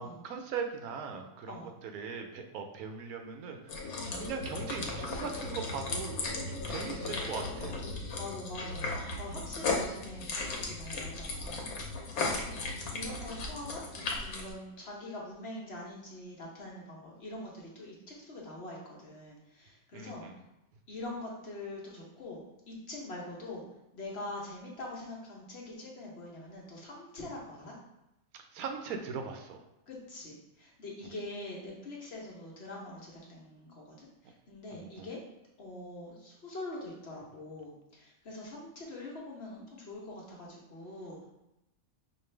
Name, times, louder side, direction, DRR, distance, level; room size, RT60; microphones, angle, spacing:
voice 1, 0.0-7.8 19.9-20.3 28.3-29.6 31.0-31.1 35.0-35.1, right 5 dB, 85° right, 5 dB, 1.1 m, -40 dB
sound 1, 3.7-14.5, left 3 dB, 80° left, 1.2 m, -36 dB
voice 2, 3.9-4.3 8.2-8.9 9.2-11.6 11.9-12.6 12.9-20.2 20.9-23.6 23.9-27.8 29.9-35.2 35.6-41.3, left 2 dB, 50° left, -3 dB, 1.1 m, -44 dB
5.2 x 2.5 x 3.2 m, 0.91 s
omnidirectional pair, 1.5 m